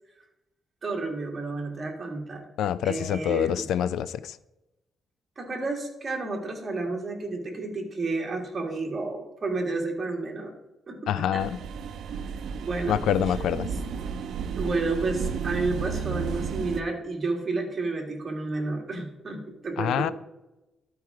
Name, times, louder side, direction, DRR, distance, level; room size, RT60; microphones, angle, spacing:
voice 1, 0.8-2.4 2.8-3.6 5.4-10.5 10.9-11.4 12.6-13.0 14.6-20.1, right 3 dB, 30° right, 1.7 m, -31 dB
voice 2, 2.6-4.4 11.1-11.6 12.9-13.7 19.8-20.1, left 10 dB, 85° left, 0.3 m, -26 dB
sound 1, 11.4-16.8, right 6 dB, 70° right, 0.6 m, -32 dB
11.5 x 4.6 x 4.7 m
cardioid pair, 150°, 0 cm